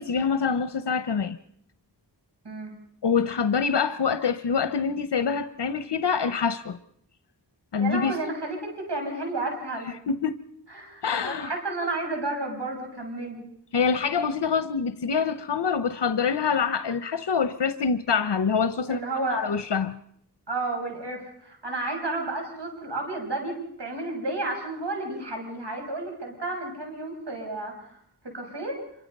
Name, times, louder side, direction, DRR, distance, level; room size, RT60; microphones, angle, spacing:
voice 1, 0.0-1.4 3.0-6.8 7.7-8.2 10.1-10.3 11.0-11.5 13.7-19.0 19.3-20.0, left 6 dB, 75° left, 0.9 m, -25 dB
voice 2, 2.4-2.7 7.8-10.0 10.7-13.4 18.9-19.4 20.5-28.0 28.2-28.8, right 2 dB, 80° right, 6.3 m, -32 dB
26.5 x 23.5 x 5.4 m
wide cardioid pair, 50°, 41 cm